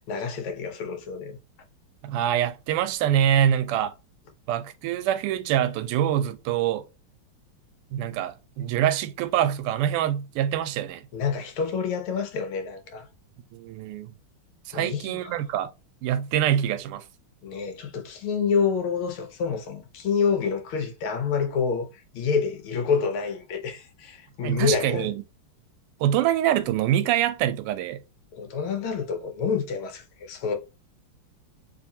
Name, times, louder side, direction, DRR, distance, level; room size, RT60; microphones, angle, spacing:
voice 1, 0.1-1.4 11.1-13.1 14.7-15.3 17.4-21.9 22.1-25.1 28.3-30.5, left 6 dB, 75° left, 1.6 m, -28 dB
voice 2, 2.0-3.9 4.5-6.8 7.9-11.0 13.5-14.1 14.7-15.7 16.0-17.0 24.4-25.1 26.0-28.0, right 11 dB, 90° right, 1.5 m, -25 dB
3.5 x 3.1 x 2.7 m
omnidirectional pair, 2.4 m